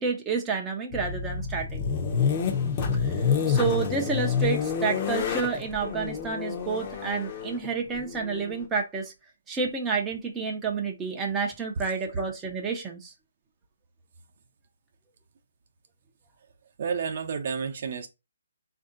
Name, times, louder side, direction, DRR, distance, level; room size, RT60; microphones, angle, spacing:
voice 1, 0.0-1.8 2.9-9.1 9.5-13.1, right 5 dB, 10° right, 0.5 m, -30 dB
sound 1, 0.9-8.7, left 6 dB, 30° left, 0.7 m, -28 dB
voice 2, 16.8-18.1, right 6 dB, 50° right, 0.7 m, -30 dB
3.5 x 2.6 x 3.7 m
hypercardioid pair, 155°, 0 cm